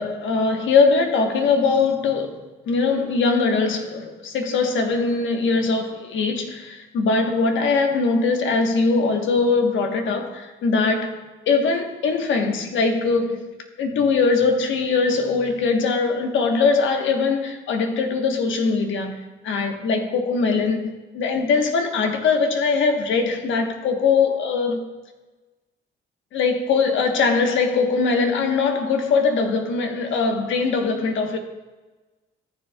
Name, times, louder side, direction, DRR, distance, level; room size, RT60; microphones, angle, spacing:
voice 1, 0.0-13.5 13.8-24.9 26.3-31.4, left 4 dB, 75° left, 1.1 m, -21 dB
14.0 x 7.1 x 2.3 m
cardioid pair, 90°, 20 cm